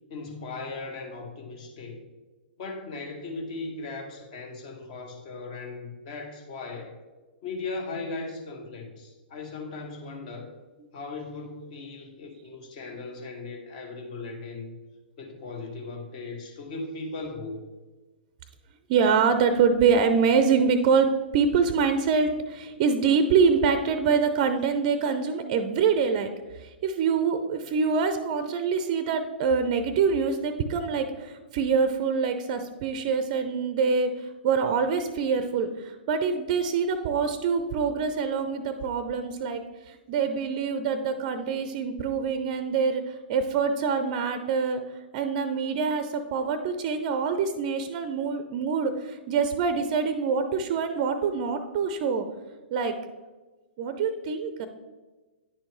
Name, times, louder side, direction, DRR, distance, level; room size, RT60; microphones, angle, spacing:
voice 1, 0.1-2.0 2.6-6.9 7.4-10.5 10.9-14.8 15.2-17.6, left 3 dB, 45° left, 3 dB, 1.2 m, -38 dB
voice 2, 18.9-39.6 39.9-44.8 45.1-52.2 52.7-52.9 53.8-54.7, right 5 dB, 40° right, 10 dB, 0.5 m, -25 dB
9.8 x 4.3 x 3.1 m, 1.2 s
figure-of-eight pair, 110°, 6 cm